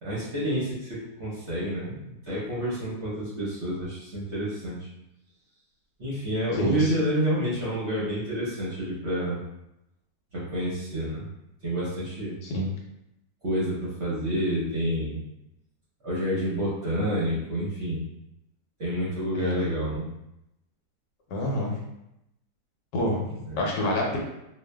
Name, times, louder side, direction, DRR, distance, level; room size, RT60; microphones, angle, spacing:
voice 1, 0.0-4.9 6.0-9.4 10.3-11.2 11.6-12.4 13.4-15.2 16.0-18.0 18.8-20.1 23.5-23.6, equal, 50° right, -9 dB, 0.8 m, -29 dB
voice 2, 6.5-6.9 12.4-12.7 19.4-19.7 21.3-21.8 22.9-23.3 23.5-24.2, left 1 dB, 80° left, -2 dB, 1.3 m, -27 dB
2.6 x 2.4 x 2.2 m, 0.85 s
omnidirectional pair, 1.8 m